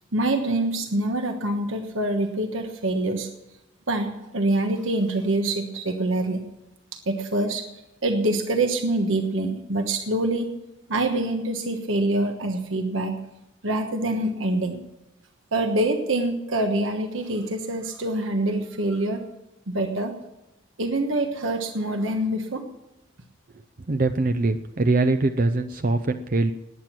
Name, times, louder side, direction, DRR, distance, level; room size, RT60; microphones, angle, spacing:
voice 1, 0.1-3.3 3.9-6.4 6.9-7.7 8.0-10.5 10.9-13.2 13.6-14.8 15.5-19.2 19.7-20.1 20.8-22.6, right 2 dB, 75° right, 5 dB, 1.3 m, -25 dB
voice 2, 23.9-26.5, right 2 dB, 45° right, 8 dB, 0.6 m, -22 dB
19.5 x 9.2 x 6.2 m, 0.97 s
head